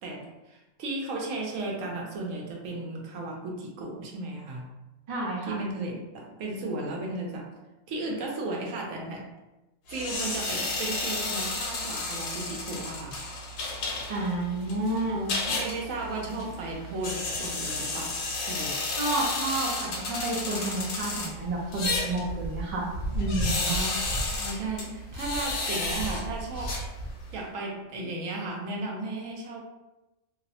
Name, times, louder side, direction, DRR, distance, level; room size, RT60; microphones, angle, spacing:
voice 1, 0.0-4.7 5.5-7.5 7.9-9.3 9.9-13.3 15.5-18.8 23.7-26.8 27.3-29.6, right 2 dB, 80° right, -1 dB, 1.0 m, -35 dB
voice 2, 5.1-5.6 14.1-15.3 19.0-23.7, right 2 dB, 45° right, -4 dB, 0.5 m, -30 dB
sound 1, 9.9-27.4, left 2 dB, 90° left, 1.0 m, -32 dB
2.6 x 2.0 x 2.7 m, 1.0 s
omnidirectional pair, 1.3 m